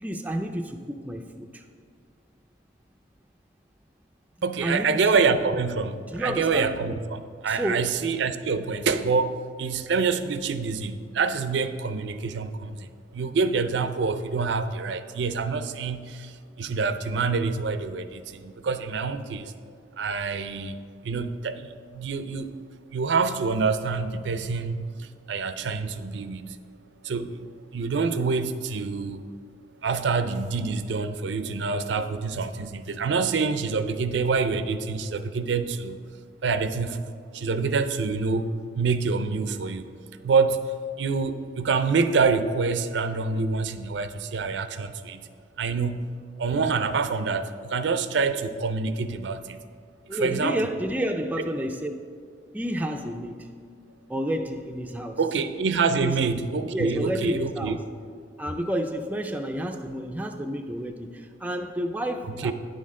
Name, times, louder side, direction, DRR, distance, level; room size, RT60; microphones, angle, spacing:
voice 1, 0.0-1.7 4.6-5.0 6.1-6.7 7.5-7.9 50.1-51.9 52.5-53.5 54.1-55.2 56.0-56.2 56.7-57.8 58.4-62.5, right 1 dB, 10° right, 4 dB, 0.3 m, -30 dB
voice 2, 4.4-19.5 20.0-20.8 21.0-22.5 22.9-26.6 27.0-27.3 27.7-29.2 29.8-36.0 36.4-39.9 40.2-45.3 45.6-49.6 50.1-50.6 55.2-57.8 62.4-62.5, right 4 dB, 75° right, 11 dB, 0.4 m, -26 dB
9.8 x 6.4 x 3.6 m, 2.1 s
head